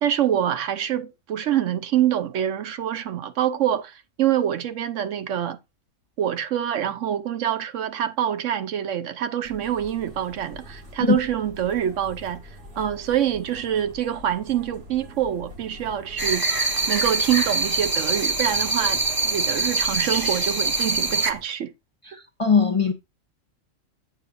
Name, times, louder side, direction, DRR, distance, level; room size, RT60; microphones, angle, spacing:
voice 1, 0.0-5.6 6.2-12.4 12.8-16.4 16.9-21.7, right 10 dB, 70° right, 1.0 m, -25 dB
sound 1, 9.4-21.4, left 1 dB, 50° right, 2.1 m, -43 dB
sound 2, 16.2-21.3, right 3 dB, 25° right, 0.5 m, -24 dB
voice 2, 22.1-22.9, left 5 dB, 35° left, 0.5 m, -20 dB
8.8 x 7.2 x 2.5 m
omnidirectional pair, 1.4 m